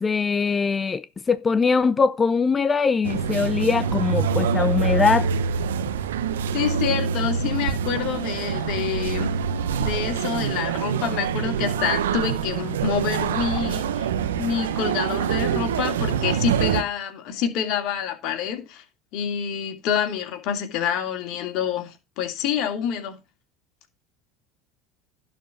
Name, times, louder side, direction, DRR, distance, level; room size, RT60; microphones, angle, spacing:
voice 1, 0.0-5.3, left 5 dB, 25° left, 0.5 m, -22 dB
sound 1, 3.0-16.8, right 7 dB, 85° right, 0.9 m, -25 dB
voice 2, 6.5-9.4 9.8-14.1 14.4-18.8 19.1-23.2, left 8 dB, 60° left, 2.6 m, -27 dB
11.5 x 4.6 x 7.1 m
hypercardioid pair, 90°, 0 cm